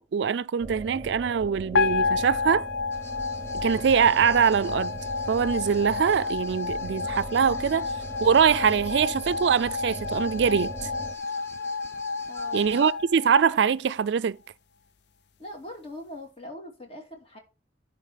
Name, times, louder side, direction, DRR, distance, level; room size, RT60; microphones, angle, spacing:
voice 1, 0.1-2.7 3.5-5.0 5.3-7.9 8.2-10.7 12.5-14.4, right 7 dB, 70° right, 0.4 m, -23 dB
sound 1, 0.6-11.1, right 2 dB, 20° right, 0.7 m, -39 dB
sound 2, 1.7-14.0, left 4 dB, 65° left, 0.4 m, -31 dB
sound 3, 2.9-12.9, left 1 dB, 15° left, 0.9 m, -49 dB
voice 2, 12.3-12.7 15.4-17.4, left 1 dB, 35° left, 2.5 m, -41 dB
11.0 x 3.9 x 5.7 m
head